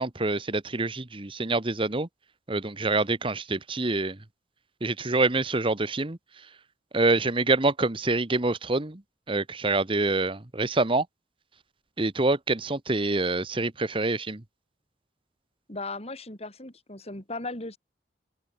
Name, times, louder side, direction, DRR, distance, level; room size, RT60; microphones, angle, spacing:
voice 1, 0.0-2.1 2.5-4.2 4.8-6.2 6.9-9.0 9.3-11.1 12.0-14.4, right 2 dB, 30° right, 1.2 m, -26 dB
voice 2, 15.7-17.8, left 2 dB, 35° left, 4.6 m, -37 dB
open air
head